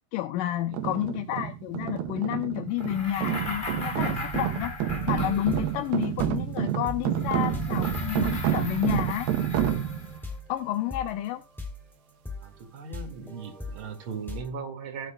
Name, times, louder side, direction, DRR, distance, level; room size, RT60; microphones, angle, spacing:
voice 1, 0.1-4.7 5.0-9.3 10.5-11.4, left 13 dB, 75° left, 2.2 m, -30 dB
sound 1, 0.7-10.2, right 11 dB, 85° right, 2.8 m, -29 dB
sound 2, 2.8-6.0 7.1-10.3, left 2 dB, 50° left, 0.6 m, -37 dB
sound 3, 4.9-14.5, left 3 dB, ahead, 2.2 m, -41 dB
voice 2, 12.4-15.1, right 5 dB, 40° right, 2.6 m, -38 dB
16.0 x 7.9 x 2.3 m
omnidirectional pair, 4.1 m